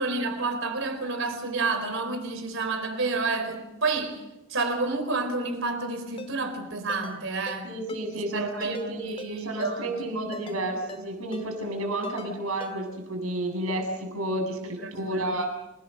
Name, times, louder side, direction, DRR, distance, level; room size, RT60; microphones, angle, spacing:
voice 1, 0.0-4.2 4.5-7.7 8.1-9.9 10.2-10.4 14.6-15.4, right 3 dB, 60° right, 4.3 m, -30 dB
Ringtone, 6.2-6.3 6.9-7.2 7.5-7.6 7.9-8.0 8.6-8.9 9.2-9.3 9.6-9.7 10.3-10.6 10.9-11.0 11.3-11.4 12.0-12.3 12.6-12.7, left 1 dB, 25° left, 2.5 m, -41 dB
voice 2, 7.6-15.5, right 1 dB, 85° right, 7.6 m, -31 dB
29.0 x 20.0 x 6.5 m
head